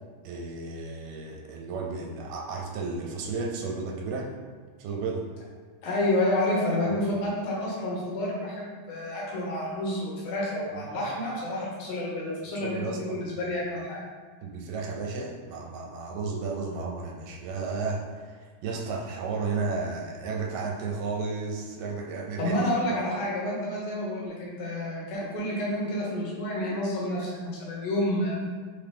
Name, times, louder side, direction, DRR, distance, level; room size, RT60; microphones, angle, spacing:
voice 1, 0.2-4.3 4.8-5.3 10.7-11.1 12.6-13.5 14.4-22.6, right 4 dB, 80° right, 0 dB, 2.2 m, -33 dB
voice 2, 5.8-14.0 22.4-28.4, left 1 dB, 75° left, -4 dB, 2.4 m, -29 dB
5.3 x 2.9 x 3.4 m, 1.5 s
omnidirectional pair, 3.8 m